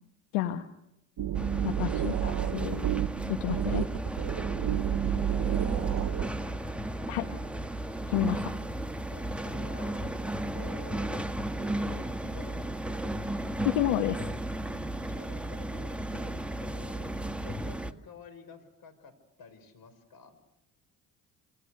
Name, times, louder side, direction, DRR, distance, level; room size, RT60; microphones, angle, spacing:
voice 1, 0.3-0.6 1.6-2.9 3.3-3.9 7.1-7.3 8.1-8.4 13.6-14.2, left 13 dB, 80° left, 8 dB, 1.4 m, -30 dB
sound 1, 1.2-6.3, right 10 dB, 50° right, 1.2 m, -30 dB
sound 2, 1.3-17.9, right 1 dB, 5° right, 1.6 m, -34 dB
voice 2, 4.3-5.1 8.2-8.4 9.1-10.2 10.5-13.0 15.0-19.1 19.4-20.4, left 5 dB, 55° left, 10 dB, 6.0 m, -52 dB
27.5 x 26.5 x 6.6 m, 0.84 s
hypercardioid pair, 65°, 43 cm